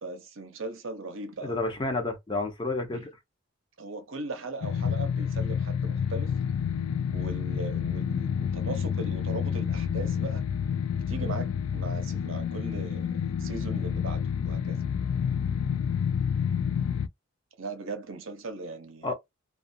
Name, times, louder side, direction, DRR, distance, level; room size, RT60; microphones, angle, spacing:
voice 1, 0.0-1.6 2.9-3.0 3.8-6.4 7.1-10.5 10.9-14.8 17.6-19.1, right 3 dB, 65° right, 0.7 m, -39 dB
voice 2, 1.4-3.1 19.0-19.1, left 2 dB, 20° left, 0.6 m, -30 dB
sound 1, 4.6-17.1, left 7 dB, 75° left, 0.3 m, -29 dB
2.4 x 2.4 x 2.6 m
head